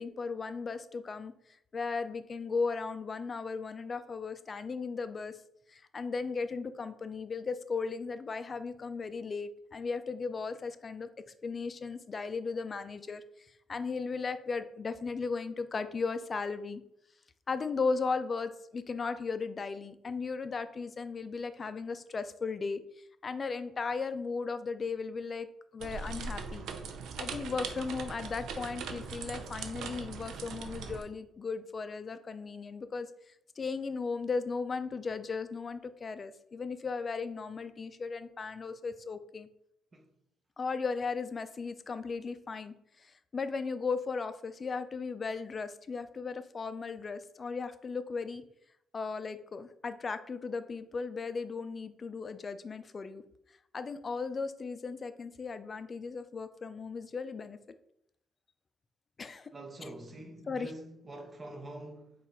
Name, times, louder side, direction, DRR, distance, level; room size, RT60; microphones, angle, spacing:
voice 1, 0.0-1.3 1.7-5.4 5.7-11.1 11.4-16.8 17.5-25.5 25.7-26.6 27.2-39.5 40.6-48.4 48.9-53.2 53.7-57.6 59.2-59.5 59.8-59.9 60.5-60.7, left 4 dB, 35° left, 0.3 m, -36 dB
sound 1, 25.8-31.0, right 5 dB, 80° right, 0.4 m, -40 dB
voice 2, 59.5-62.1, right 1 dB, 30° right, 0.7 m, -45 dB
4.0 x 2.4 x 4.2 m
cardioid pair, 90°, 0 cm